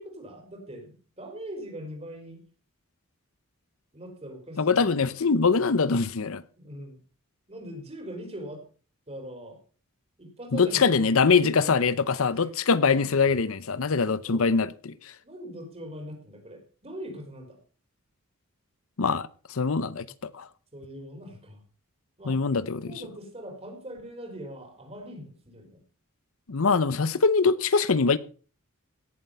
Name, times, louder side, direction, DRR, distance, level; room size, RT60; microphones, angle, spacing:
voice 1, 0.0-2.4 3.9-5.1 6.6-7.0 7.5-8.6 9.1-9.6 10.2-11.9 14.3-14.5 15.2-17.6 20.7-21.6 22.2-22.4 22.8-25.8, equal, 30° right, 4.3 m, -41 dB
voice 2, 4.6-6.4 10.5-15.1 19.0-20.5 22.3-22.9 26.5-28.2, left 4 dB, 70° left, 0.7 m, -23 dB
17.5 x 7.6 x 5.6 m
head